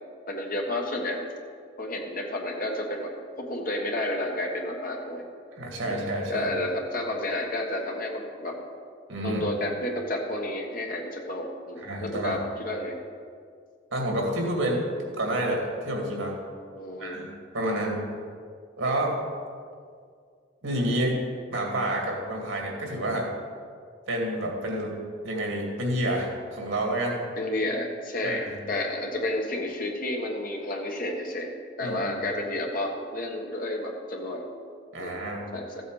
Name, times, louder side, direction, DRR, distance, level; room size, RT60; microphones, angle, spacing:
voice 1, 0.3-1.3 1.8-5.2 5.8-6.0 6.3-8.6 9.2-13.0 16.7-17.2 27.4-34.5 35.0-35.2 35.5-35.7, left 1 dB, 45° left, 1 dB, 1.4 m, -31 dB
voice 2, 5.6-6.5 9.1-9.4 11.8-12.4 13.9-14.8 15.2-16.3 17.0-18.0 18.8-19.1 20.6-21.2 21.5-23.3 24.1-24.9 25.2-27.2 28.2-28.6 31.8-32.1 34.9-35.5, right 1 dB, 80° right, 0 dB, 2.3 m, -29 dB
14.0 x 8.0 x 4.9 m, 2.1 s
head